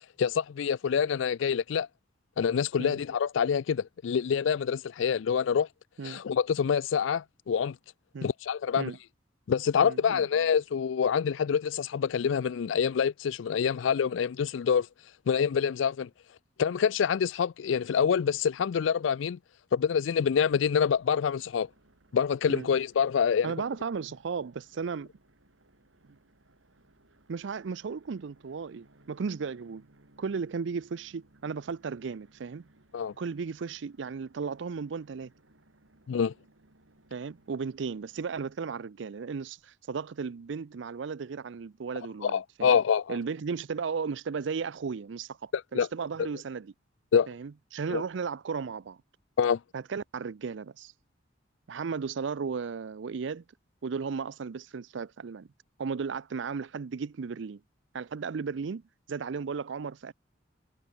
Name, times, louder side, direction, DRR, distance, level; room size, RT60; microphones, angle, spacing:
voice 1, 0.2-1.9 2.4-5.7 6.0-7.8 8.2-8.9 9.5-14.9 15.3-16.1 16.6-19.4 19.7-21.7 22.1-23.5 32.9-33.1 36.1-36.3 42.2-43.2 45.5-45.9 47.1-47.3 47.9-48.0 49.4-49.6, left 7 dB, 80° left, 0.4 m, -26 dB
voice 2, 9.8-10.3 22.5-22.7 23.4-25.1 27.3-29.8 30.2-32.6 33.2-35.3 37.1-42.8 43.1-46.7 47.3-49.0 49.7-50.9 51.7-53.4 53.8-55.5 55.8-57.6 57.9-58.8 59.1-60.1, right 5 dB, 70° right, 0.5 m, -35 dB
sound 1, 20.5-38.5, right 1 dB, 90° right, 2.7 m, -63 dB
head